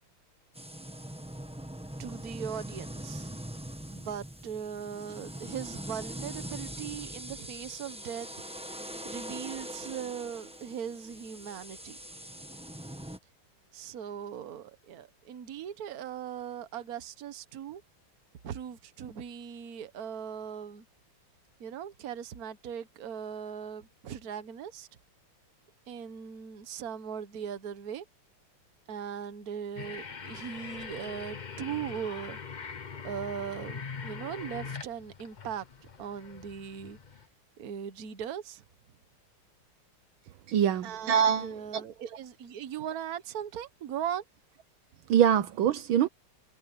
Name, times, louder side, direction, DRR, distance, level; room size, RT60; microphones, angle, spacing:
sound 1, 0.5-13.2, equal, 5° right, 0.9 m, -42 dB
voice 1, 2.0-3.3 3.9-8.3 9.0-12.0 13.7-17.8 18.4-20.8 21.6-24.9 25.9-28.0 28.9-32.4 33.0-35.7 36.0-37.0 37.6-38.6 40.8-44.2, right 8 dB, 50° right, 1.5 m, -39 dB
sound 2, 29.8-37.3, left 5 dB, 80° left, 0.4 m, -42 dB
voice 2, 40.5-41.8 45.1-46.1, right 9 dB, 75° right, 1.6 m, -24 dB
omnidirectional pair, 2.3 m